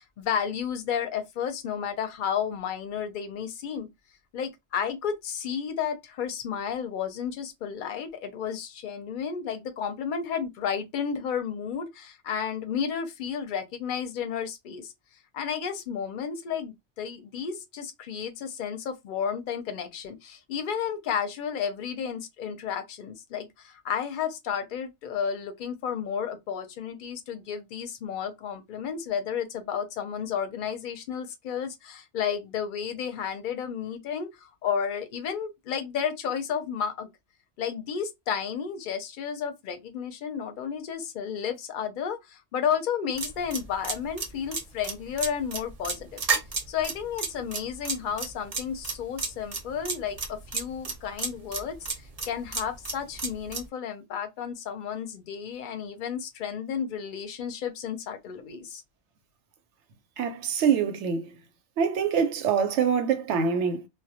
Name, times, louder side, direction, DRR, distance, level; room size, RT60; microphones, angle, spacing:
voice 1, 0.0-3.9 4.3-14.9 15.3-37.1 37.6-46.2 46.7-51.8 52.3-58.8, left 7 dB, 60° left, 0.6 m, -32 dB
sound 1, 43.2-53.7, right 4 dB, 40° right, 0.6 m, -31 dB
voice 2, 60.2-61.3 61.8-63.9, right 6 dB, 85° right, 0.9 m, -25 dB
2.2 x 2.1 x 2.7 m
omnidirectional pair, 1.2 m